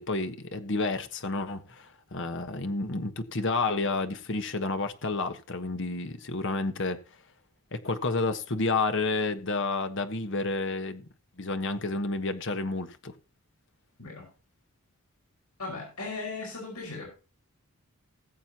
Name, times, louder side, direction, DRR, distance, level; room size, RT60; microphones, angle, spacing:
voice 1, 0.0-7.0 7.7-11.1 11.4-13.1, left 3 dB, 55° left, 1.3 m, -30 dB
voice 2, 15.6-17.1, left 3 dB, 80° left, 5.5 m, -37 dB
19.5 x 7.7 x 2.9 m
head